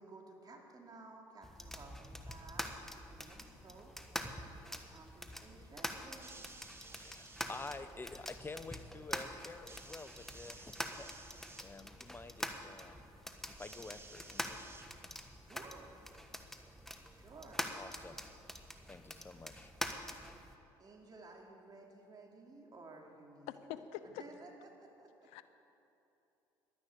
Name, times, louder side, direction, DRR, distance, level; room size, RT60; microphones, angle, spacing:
voice 1, 0.0-3.9 4.6-6.3 15.4-16.0 17.1-17.7 20.8-25.4, right 3 dB, 40° right, 0 dB, 2.8 m, -55 dB
sound 1, 1.4-20.6, equal, 5° left, 1.2 m, -45 dB
sound 2, 6.1-7.8 9.7-11.7 13.6-15.3 16.2-16.3, right 3 dB, 20° right, 1.6 m, -55 dB
voice 2, 6.9-11.1 11.6-13.1 13.6-14.6 17.8-18.3 18.9-19.7, left 3 dB, 20° left, 12 dB, 0.9 m, -49 dB
voice 3, 23.5-24.2 25.3-25.4, left 11 dB, 80° left, 12 dB, 0.7 m, -44 dB
11.5 x 10.5 x 8.4 m, 2.9 s
supercardioid pair, 70°, 11 cm